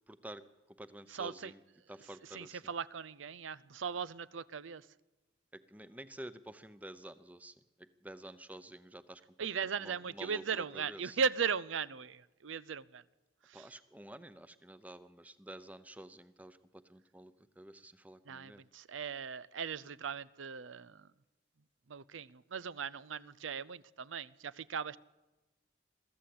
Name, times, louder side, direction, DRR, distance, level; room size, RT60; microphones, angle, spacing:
voice 1, 0.1-1.6 1.9-2.6 5.5-9.2 9.5-11.2 13.5-18.6, right 1 dB, 10° right, 13 dB, 0.8 m, -50 dB
voice 2, 1.1-1.5 2.3-4.9 9.4-13.0 13.4-13.7 18.3-21.1 21.9-25.0, right 6 dB, 90° right, 20 dB, 0.6 m, -38 dB
22.0 x 14.5 x 8.6 m, 1.1 s
head